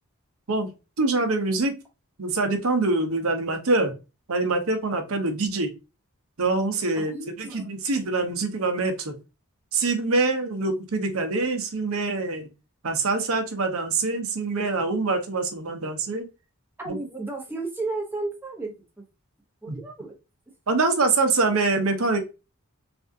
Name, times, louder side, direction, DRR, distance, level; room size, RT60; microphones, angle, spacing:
voice 1, 1.0-1.7 2.2-3.9 4.3-5.7 6.4-9.2 9.7-12.5 12.8-16.3 16.9-17.0 19.7-19.8 20.7-22.2, right 3 dB, 75° right, 6 dB, 0.7 m, -25 dB
voice 2, 7.0-7.7 16.8-19.0 19.6-20.2, right 3 dB, 10° right, 0 dB, 0.8 m, -33 dB
3.4 x 2.4 x 2.6 m, 0.28 s
head